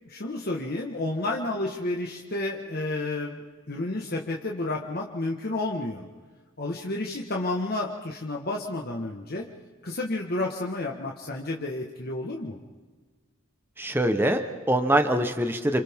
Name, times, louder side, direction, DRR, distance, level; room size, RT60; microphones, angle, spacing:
voice 1, 0.0-6.0 6.6-9.5 9.8-12.6, left 2 dB, 50° left, -1 dB, 1.6 m, -31 dB
voice 2, 13.8-15.8, right 1 dB, 10° right, 6 dB, 1.1 m, -24 dB
29.0 x 27.0 x 3.7 m, 1.4 s
head